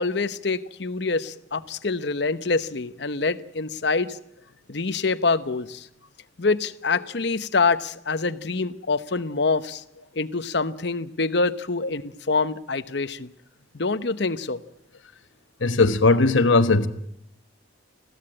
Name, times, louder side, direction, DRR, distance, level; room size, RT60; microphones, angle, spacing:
voice 1, 0.0-4.2 4.7-5.9 6.4-9.8 10.2-13.3 13.7-14.6, left 4 dB, 60° left, 0.9 m, -25 dB
voice 2, 15.6-16.9, left 3 dB, 75° left, 1.1 m, -18 dB
21.0 x 15.5 x 8.8 m
head